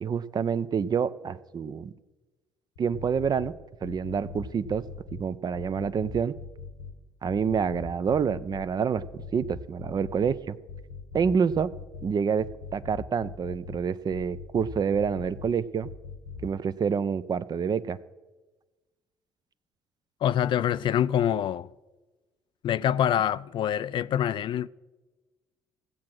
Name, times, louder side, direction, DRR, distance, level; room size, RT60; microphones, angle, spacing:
voice 1, 0.0-1.9 2.8-3.5 3.8-4.8 5.1-6.3 7.2-10.6 11.1-11.7 12.0-12.5 12.7-15.9 16.4-18.0, right 6 dB, 45° right, 0.6 m, -27 dB
sound 1, 2.8-3.5 3.8-5.2 5.5-6.9 7.2-8.6 9.0-10.4 10.7-12.1 12.4-13.8 14.1-15.5 15.8-16.5, left 5 dB, 85° left, 1.5 m, -41 dB
voice 2, 20.2-21.7 22.6-24.7, left 10 dB, 55° left, 0.4 m, -25 dB
16.5 x 7.5 x 6.1 m
hypercardioid pair, 55°, 10 cm